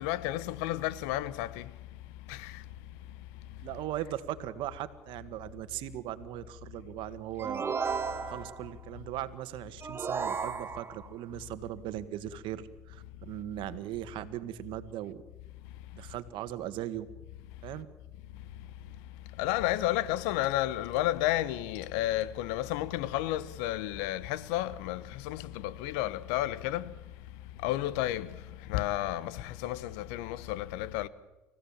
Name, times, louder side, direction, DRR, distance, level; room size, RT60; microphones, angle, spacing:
voice 1, 0.0-1.7 2.3-2.6 19.4-26.9 27.6-28.3 28.7-31.1, left 14 dB, 80° left, 1.0 m, -31 dB
voice 2, 3.6-7.7 8.3-15.2 15.9-17.1 17.6-17.9, right 13 dB, 70° right, 1.6 m, -38 dB
sound 1, 7.4-8.7 9.8-11.1, right 5 dB, 30° right, 1.9 m, -34 dB
29.5 x 15.5 x 7.3 m
supercardioid pair, 80°, 9 cm